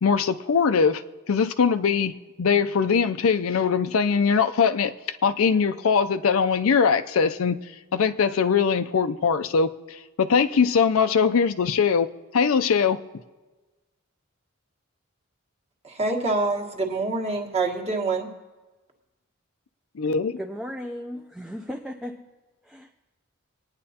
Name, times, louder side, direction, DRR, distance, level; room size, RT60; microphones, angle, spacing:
voice 1, 0.0-4.9 5.2-7.6 7.9-9.7 10.2-12.1 12.3-13.0 20.0-20.4, left 6 dB, 75° left, 10 dB, 0.5 m, -21 dB
voice 2, 15.8-18.3, right 3 dB, 30° right, 0 dB, 1.4 m, -26 dB
voice 3, 20.4-22.3 22.6-22.9, equal, ahead, 2 dB, 0.4 m, -36 dB
24.0 x 9.6 x 2.8 m, 1.2 s
head